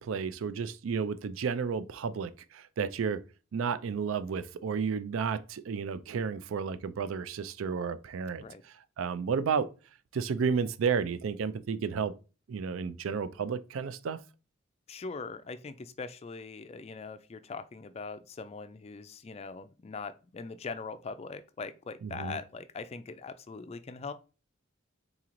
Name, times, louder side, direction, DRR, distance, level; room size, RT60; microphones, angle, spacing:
voice 1, 0.0-3.2 3.5-8.4 9.0-9.7 10.1-12.1 12.5-14.2 22.0-22.4, right 6 dB, 80° right, 0.4 m, -32 dB
voice 2, 14.9-24.1, left 4 dB, 30° left, 0.3 m, -41 dB
4.0 x 3.0 x 3.7 m
head